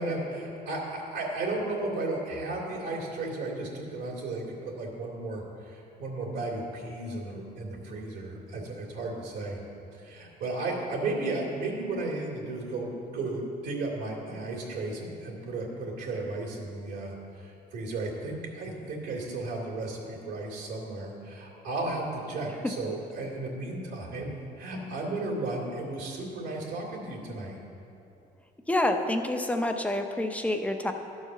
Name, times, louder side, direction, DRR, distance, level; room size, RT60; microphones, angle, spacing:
voice 1, 0.0-9.6 9.9-27.6, right 2 dB, 75° right, -4 dB, 2.7 m, -34 dB
voice 2, 28.7-30.9, left 1 dB, 10° left, 5 dB, 0.7 m, -27 dB
12.5 x 4.8 x 6.7 m, 2.7 s
cardioid pair, 110°, 17 cm